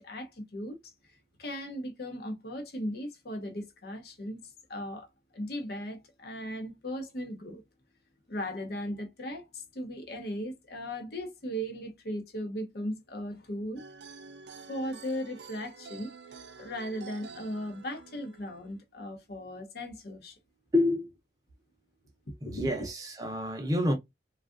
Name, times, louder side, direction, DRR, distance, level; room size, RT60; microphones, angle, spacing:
voice 1, 0.0-5.1 5.3-7.6 8.3-13.8 14.7-20.4 22.3-22.9, equal, 60° left, 0.8 m, -37 dB
sound 1, 13.8-18.8, right 5 dB, 70° right, 0.5 m, -49 dB
voice 2, 20.7-21.1 22.4-23.9, left 1 dB, 20° right, 0.6 m, -28 dB
3.4 x 2.3 x 2.4 m
head